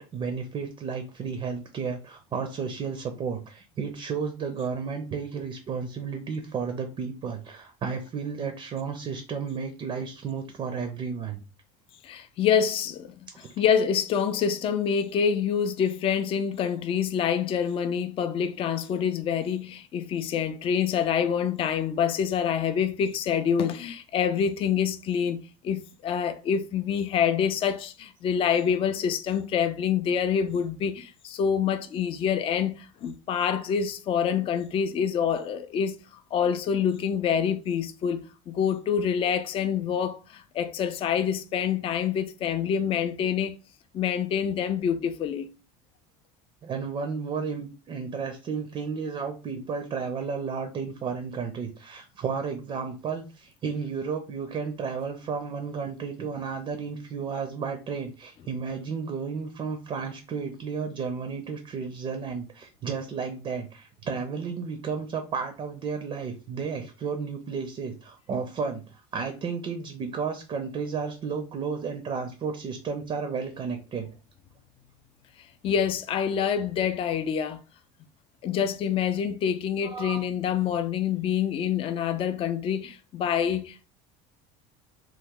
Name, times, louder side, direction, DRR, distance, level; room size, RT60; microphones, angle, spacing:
voice 1, 0.0-11.4 13.3-13.5 46.6-74.1 79.8-80.3, right 5 dB, 30° right, 0.5 m, -33 dB
voice 2, 12.0-36.0 36.3-43.6 43.9-45.5 75.6-77.6 78.4-83.9, left 7 dB, 35° left, 0.4 m, -26 dB
3.0 x 2.0 x 3.6 m
supercardioid pair, 120°, 17 cm